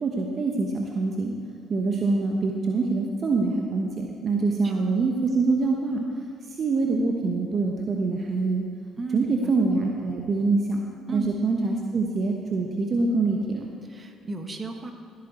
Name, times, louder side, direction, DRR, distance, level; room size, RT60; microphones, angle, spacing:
voice 1, 0.0-1.3 1.7-6.0 6.6-8.6 9.1-10.8 11.1-13.7, right 3 dB, 50° right, 1 dB, 1.1 m, -25 dB
voice 2, 9.0-9.5 11.1-11.3 13.8-14.9, right 3 dB, 30° right, 4 dB, 1.5 m, -34 dB
15.5 x 8.5 x 4.3 m, 2.3 s
hypercardioid pair, 60°, 0 cm